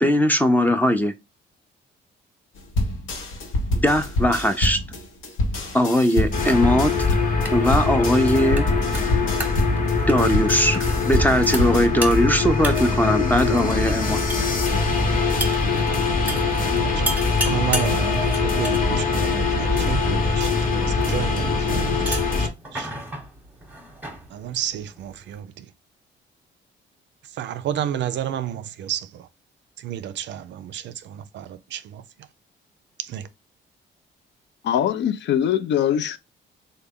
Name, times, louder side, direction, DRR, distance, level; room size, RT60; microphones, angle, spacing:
voice 1, 0.0-1.1 3.7-4.8 5.7-7.1 7.5-8.7 10.1-14.2, left 1 dB, 10° left, 0.5 m, -20 dB
sound 1, 2.7-11.9, left 1 dB, 85° left, 0.8 m, -26 dB
sound 2, 6.3-22.5, left 4 dB, 45° left, 0.9 m, -22 dB
sound 3, 6.5-25.4, right 1 dB, 10° right, 0.9 m, -36 dB
voice 2, 13.2-13.7 34.6-36.2, left 10 dB, 65° left, 0.4 m, -23 dB
voice 3, 16.8-20.5 20.8-22.9 24.3-25.7 27.4-29.1 29.8-32.0 33.0-33.3, right 10 dB, 65° right, 0.4 m, -31 dB
3.4 x 2.2 x 3.5 m
cardioid pair, 90°, 20 cm